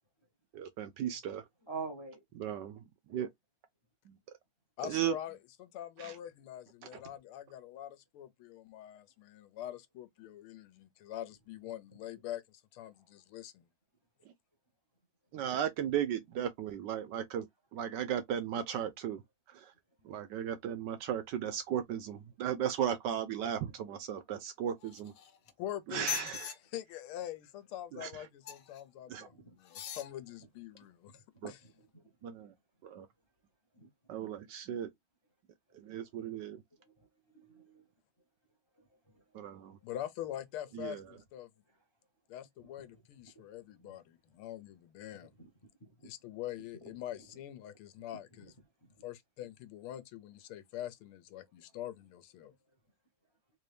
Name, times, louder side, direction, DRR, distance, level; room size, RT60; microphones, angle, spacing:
voice 1, 0.5-1.5 2.4-2.8 3.1-3.3 4.1-4.4 4.8-5.1 6.0-6.2 15.3-19.2 19.5-19.7 20.0-25.1 25.9-26.5 27.9-28.2 29.1-29.3 31.4-31.5 32.2-32.5 32.8-33.1 34.1-34.9 35.7-36.6 39.3-39.8 40.7-41.0, right 9 dB, 75° right, 1.0 m, -36 dB
voice 2, 1.7-2.2 29.3-29.5 31.4-32.0 33.8-33.9 37.0-37.1 37.3-37.8 39.1-39.2 43.8-43.9 45.8-46.1, right 4 dB, 30° left, 0.5 m, -45 dB
voice 3, 4.8-13.7 25.6-26.4 26.7-31.1 31.5-31.6 39.8-41.5 42.3-45.3 46.0-48.5 49.0-52.5, left 12 dB, 85° left, 1.6 m, -44 dB
sound 1, 24.8-25.5 26.0-26.6 28.4-28.8 29.6-30.1 30.8-30.9, left 10 dB, 65° left, 0.8 m, -40 dB
4.1 x 2.6 x 3.2 m
omnidirectional pair, 2.3 m